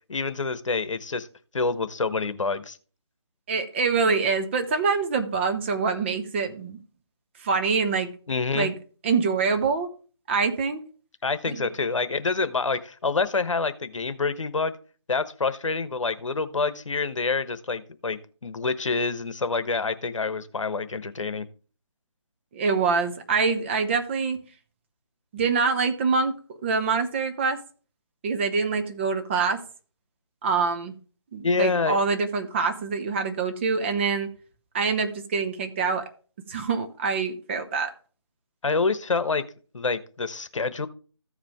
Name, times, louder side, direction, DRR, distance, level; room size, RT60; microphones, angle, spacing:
voice 1, 0.1-1.3 1.5-2.8 8.3-8.7 11.2-14.8 15.1-21.4 31.4-32.0 38.6-39.4 39.7-40.9, left 4 dB, 75° left, 1.0 m, -27 dB
voice 2, 3.5-6.8 7.4-8.1 8.5-8.7 9.0-9.9 10.3-10.8 11.5-11.7 22.5-24.4 25.3-26.3 26.6-27.6 28.2-29.6 30.4-30.9 31.3-34.3 34.7-36.0 36.5-37.9, right 5 dB, 20° right, 0.7 m, -25 dB
14.5 x 5.0 x 3.5 m
figure-of-eight pair, 160°, 16 cm